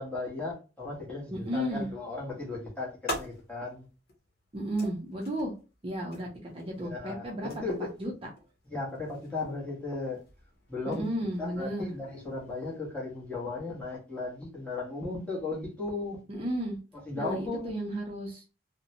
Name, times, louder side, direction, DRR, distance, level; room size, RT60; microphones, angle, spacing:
voice 1, 0.0-3.8 6.8-7.9 8.7-10.2 10.7-11.1 11.4-16.2 17.1-17.8, left 3 dB, 5° left, 1.0 m, -36 dB
voice 2, 1.3-1.9 4.5-5.5 5.8-7.5 8.0-8.3 10.9-11.9 16.3-16.8 17.1-18.4, equal, 30° right, 0.6 m, -33 dB
sound 1, 2.3-12.8, left 1 dB, 60° left, 0.9 m, -46 dB
2.7 x 2.1 x 2.6 m
head